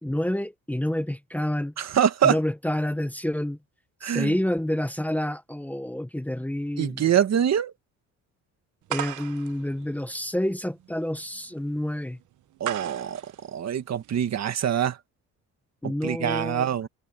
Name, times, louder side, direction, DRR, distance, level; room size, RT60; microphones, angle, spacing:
voice 1, 0.0-1.7 2.2-3.6 4.0-7.0 8.9-12.2 15.8-16.7, left 1 dB, 5° left, 1.4 m, -28 dB
voice 2, 1.8-2.4 4.0-4.3 6.8-7.7 12.6-13.2 13.5-15.0 15.8-16.9, right 9 dB, 60° right, 2.1 m, -24 dB
sound 1, 8.9-14.5, right 14 dB, 80° right, 1.1 m, -38 dB
cardioid pair, 90°, 30 cm